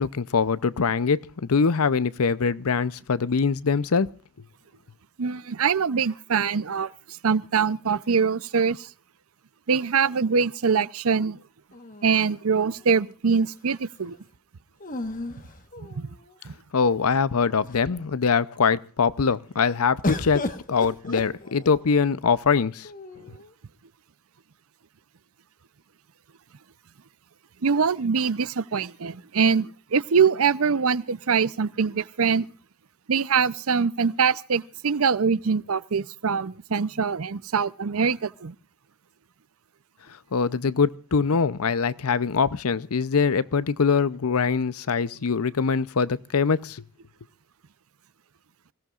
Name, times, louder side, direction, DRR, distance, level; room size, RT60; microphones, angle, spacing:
voice 1, 0.0-4.1 16.7-22.9 40.3-46.8, left 5 dB, 80° left, 0.7 m, -23 dB
voice 2, 5.2-8.9 9.7-11.4 12.0-14.2 16.0-16.1 16.4-16.5 27.6-32.5 33.1-38.5, right 6 dB, 75° right, 0.6 m, -23 dB
sound 1, 11.7-12.8 14.8-16.3 17.1-17.2 17.5-18.1 20.0-21.9 22.8-23.5, left 2 dB, 40° left, 1.3 m, -34 dB
26.0 x 17.0 x 2.5 m
head